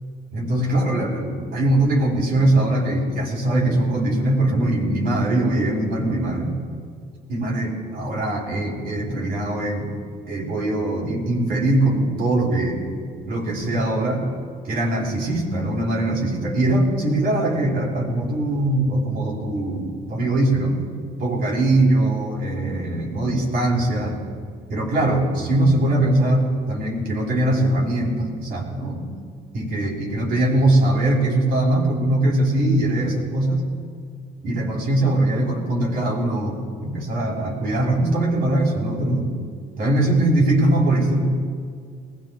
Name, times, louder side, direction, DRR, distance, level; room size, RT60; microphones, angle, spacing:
voice 1, 0.3-6.6 7.3-9.9 10.3-12.8 13.2-14.3 14.6-20.8 21.2-24.2 24.7-29.1 29.5-33.6 34.4-39.3 39.8-41.2, right 1 dB, 65° right, -1 dB, 3.9 m, -21 dB
19.5 x 19.5 x 2.4 m, 2.1 s
cardioid pair, 110°, 17 cm